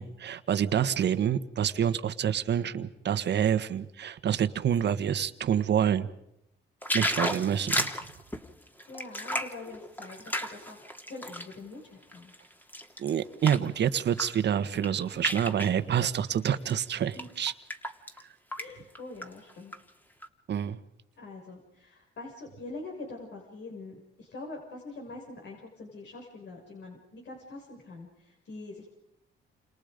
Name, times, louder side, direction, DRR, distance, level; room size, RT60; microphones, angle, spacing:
voice 1, 0.0-6.1 6.9-7.9 13.0-17.5 20.5-20.8, right 9 dB, 60° right, 11 dB, 1.4 m, -27 dB
sound 1, 6.8-11.5 12.0-13.7 14.1-14.4 14.7-15.7 16.5-16.7 17.1-18.2 18.5-18.7 18.9-19.8 20.2-20.3, equal, 10° left, 2.6 m, -33 dB
voice 2, 8.9-10.8 11.1-12.3 17.1-17.3 18.6-19.7 21.2-28.9, left 2 dB, 60° left, 1 dB, 6.3 m, -44 dB
29.5 x 27.5 x 5.2 m, 0.81 s
cardioid pair, 90°, 20 cm